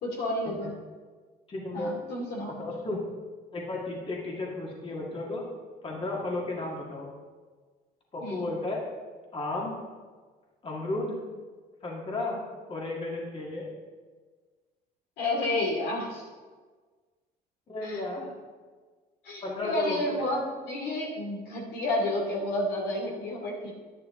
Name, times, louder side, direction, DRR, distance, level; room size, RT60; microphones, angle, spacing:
voice 1, 0.0-0.7 1.7-2.6 8.2-8.4 15.2-16.3 17.8-18.0 19.2-23.7, left 1 dB, 75° left, -1 dB, 2.7 m, -30 dB
voice 2, 1.5-1.9 2.5-3.0 3.5-5.5 5.8-7.1 8.1-8.8 9.3-9.7 10.6-11.2 11.8-12.4 12.7-13.6 17.7-18.3 19.4-20.1, left 2 dB, 35° left, -2 dB, 2.0 m, -33 dB
10.5 x 10.0 x 3.8 m, 1.5 s
cardioid pair, 110°, 17 cm